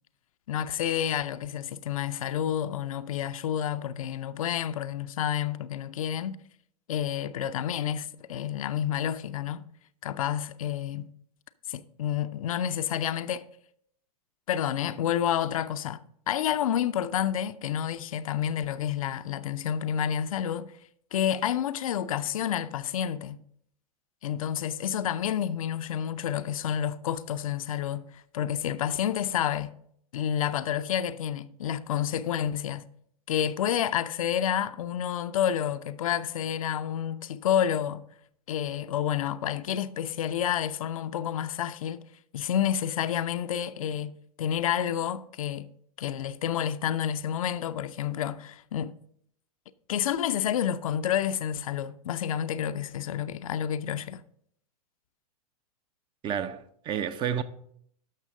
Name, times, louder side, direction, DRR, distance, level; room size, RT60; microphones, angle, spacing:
voice 1, 0.5-6.4 6.9-9.7 10.0-11.1 11.7-13.5 14.5-16.0 16.3-20.7 21.1-23.4 24.2-29.8 30.1-32.8 33.3-38.0 38.5-42.0 42.3-45.7 46.0-48.9 49.9-54.2, left 9 dB, 60° left, 0.5 m, -29 dB
voice 2, 56.2-57.4, right 9 dB, 25° right, 0.6 m, -30 dB
12.0 x 6.1 x 3.8 m
figure-of-eight pair, 100°, 20 cm